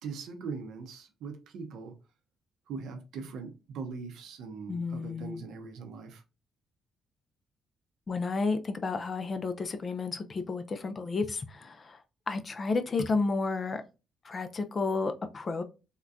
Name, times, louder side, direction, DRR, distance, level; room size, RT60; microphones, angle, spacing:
voice 1, 0.0-1.9 2.7-6.2, right 5 dB, 80° right, 0.6 m, -41 dB
voice 2, 4.7-5.4 8.1-12.0 12.3-13.8 14.2-15.6, left 4 dB, 40° left, 0.4 m, -31 dB
3.6 x 2.2 x 2.5 m
cardioid pair, 90°, 0 cm